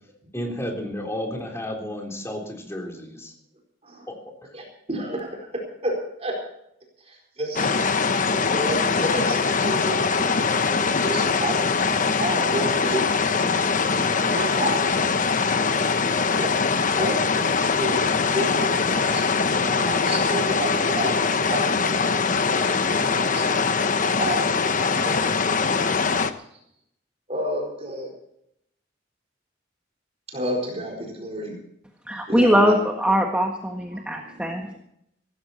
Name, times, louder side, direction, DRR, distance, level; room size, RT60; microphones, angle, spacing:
voice 1, 0.3-3.3 4.1-4.5, left 1 dB, 15° left, 1 dB, 3.7 m, -32 dB
voice 2, 4.5-6.4 7.1-7.7 8.3-14.8 15.6-16.0 16.4-16.7 17.0-18.0 18.3-23.6 24.2-25.6 27.3-28.1 30.3-31.5 32.3-32.9 33.9-34.4, right 1 dB, 35° right, 1 dB, 4.4 m, -31 dB
sound 1, 7.6-26.3, left 5 dB, 45° left, 1.0 m, -22 dB
voice 3, 32.0-34.8, equal, 5° right, 2 dB, 1.5 m, -21 dB
17.5 x 15.0 x 4.3 m, 0.74 s
head